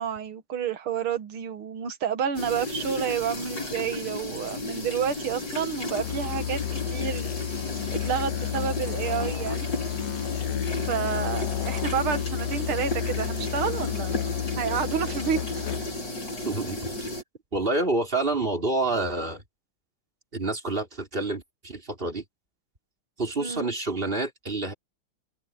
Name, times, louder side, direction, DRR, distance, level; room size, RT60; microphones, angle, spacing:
voice 1, 0.0-7.3 7.9-9.7 10.8-15.7 23.4-23.7, right 8 dB, 80° right, 2.3 m, -30 dB
sound 1, 2.3-17.2, left 2 dB, 50° left, 5.7 m, -34 dB
Musical instrument, 6.0-16.1, left 13 dB, 75° left, 1.5 m, -32 dB
voice 2, 16.5-17.1 17.5-19.4 20.3-22.2 23.2-24.7, right 2 dB, 25° right, 3.8 m, -28 dB
open air
omnidirectional pair, 2.4 m